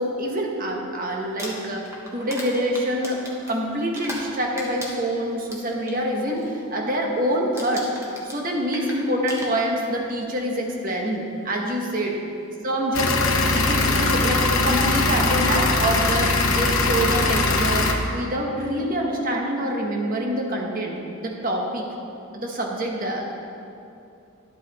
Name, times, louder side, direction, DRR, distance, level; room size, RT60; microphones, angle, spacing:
voice 1, 0.0-1.8 2.1-3.2 3.5-7.9 8.2-12.2 12.6-21.8 22.3-23.3, right 1 dB, 40° right, 0 dB, 1.2 m, -26 dB
Crumpling crinkling, 1.2-4.3 4.6-6.0 6.3-6.7 6.9-7.3 7.6-10.0 10.9-11.0 13.0-13.1 13.5-13.8, equal, 15° right, 1.2 m, -37 dB
sound 1, 12.9-17.9, left 3 dB, 75° left, 0.9 m, -21 dB
11.0 x 8.1 x 4.2 m, 2.7 s
head